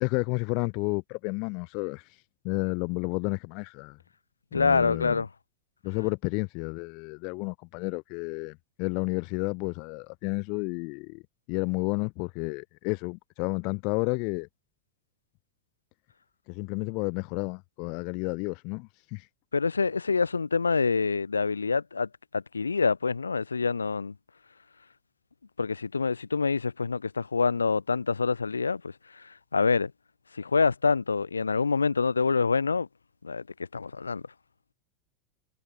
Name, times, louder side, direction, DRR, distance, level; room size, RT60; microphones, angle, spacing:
voice 1, 0.0-2.1 2.4-4.0 4.5-5.2 5.8-11.2 11.5-14.5 16.5-19.3, left 33 dB, 50° left, 0.5 m, -31 dB
voice 2, 4.5-5.3 19.5-22.1 22.3-24.1 25.6-28.9 29.5-29.9 30.3-32.9 33.2-33.4 33.7-34.2, left 4 dB, 85° left, 1.0 m, -26 dB
figure-of-eight pair, 85°, 0 cm